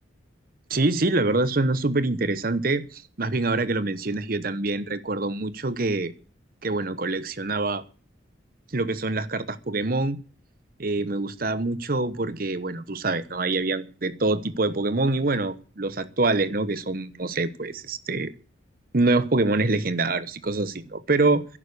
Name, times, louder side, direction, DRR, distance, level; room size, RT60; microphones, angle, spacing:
voice 1, 0.7-6.1 6.6-7.8 8.7-10.2 10.8-18.3 18.9-21.4, right 2 dB, 50° right, 0.9 m, -25 dB
11.0 x 9.8 x 8.3 m
head